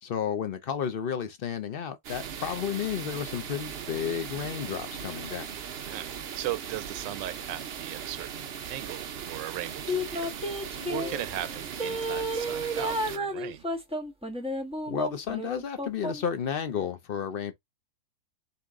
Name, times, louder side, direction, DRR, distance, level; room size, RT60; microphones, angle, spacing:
voice 1, 0.0-5.5 14.9-17.5, left 8 dB, 60° left, 0.5 m, -32 dB
sound 1, 2.0-13.2, right 8 dB, 70° right, 0.5 m, -39 dB
voice 2, 5.8-10.3 10.9-13.6, right 13 dB, 90° right, 1.3 m, -38 dB
sound 2, 9.9-11.1 11.8-16.3 16.7-16.8, equal, 5° right, 0.9 m, -32 dB
sound 3, 10.8-11.8, left 3 dB, 25° left, 1.2 m, -43 dB
4.2 x 2.9 x 3.6 m
omnidirectional pair, 1.9 m